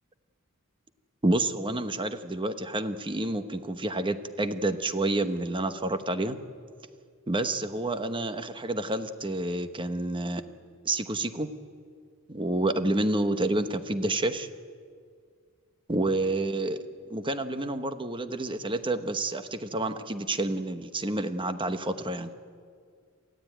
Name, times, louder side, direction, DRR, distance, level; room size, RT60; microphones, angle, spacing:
voice 1, 1.2-6.4 7.3-10.4 10.8-11.5 12.3-14.5 15.9-16.8 17.1-22.3, right 2 dB, 25° right, 9 dB, 1.1 m, -29 dB
28.0 x 15.0 x 9.3 m, 2.1 s
head